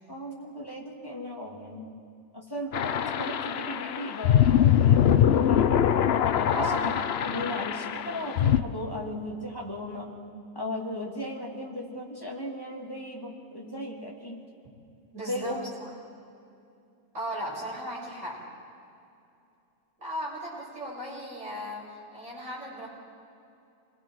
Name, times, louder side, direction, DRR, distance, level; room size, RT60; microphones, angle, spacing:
voice 1, 0.1-2.0 2.3-5.7 6.3-10.1 10.5-14.4 15.3-15.8, left 1 dB, 15° left, -2 dB, 2.6 m, -36 dB
sound 1, 2.7-8.6, left 10 dB, 60° left, 0.7 m, -23 dB
voice 2, 6.5-6.9 15.1-15.9 17.1-18.4 20.0-22.9, equal, 50° right, -6 dB, 7.3 m, -36 dB
28.0 x 22.0 x 4.7 m, 2.7 s
omnidirectional pair, 1.6 m